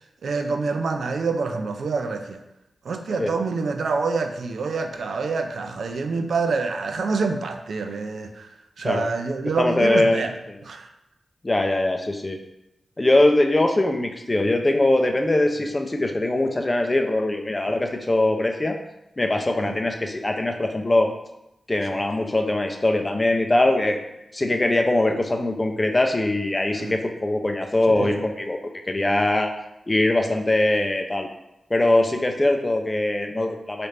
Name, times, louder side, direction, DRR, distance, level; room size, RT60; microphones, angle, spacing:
voice 1, 0.2-2.4 2.8-10.3 10.7-10.9 17.7-17.8 19.6-19.8 22.0-22.1 26.8-26.9 28.0-28.3, right 4 dB, 85° right, 5 dB, 0.3 m, -27 dB
voice 2, 9.6-10.6 11.4-12.4 13.0-18.8 19.2-21.1 21.7-24.0 24.3-28.6 28.9-29.5 29.9-31.3 31.7-33.9, left 1 dB, 25° left, 4 dB, 0.5 m, -22 dB
3.3 x 2.5 x 4.1 m, 0.87 s
wide cardioid pair, 75°, 0 cm